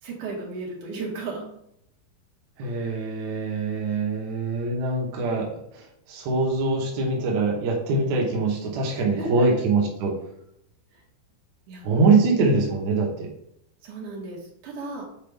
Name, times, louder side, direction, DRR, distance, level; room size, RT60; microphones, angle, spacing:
voice 1, 0.0-1.4 9.0-9.6 10.9-11.0 11.7-11.9 13.8-15.0, right 2 dB, 55° right, -3 dB, 2.7 m, -35 dB
voice 2, 2.6-10.2 11.8-13.3, right 3 dB, 80° right, -1 dB, 1.6 m, -23 dB
8.5 x 4.3 x 3.5 m, 0.75 s
omnidirectional pair, 5.2 m